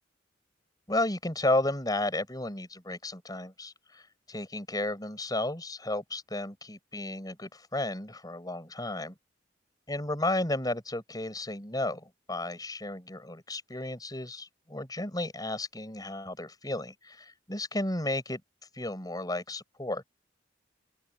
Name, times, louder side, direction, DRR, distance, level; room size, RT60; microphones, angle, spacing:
voice 1, 0.9-9.1 9.9-18.4 18.7-20.0, left 2 dB, 20° left, 6.3 m, -33 dB
open air
head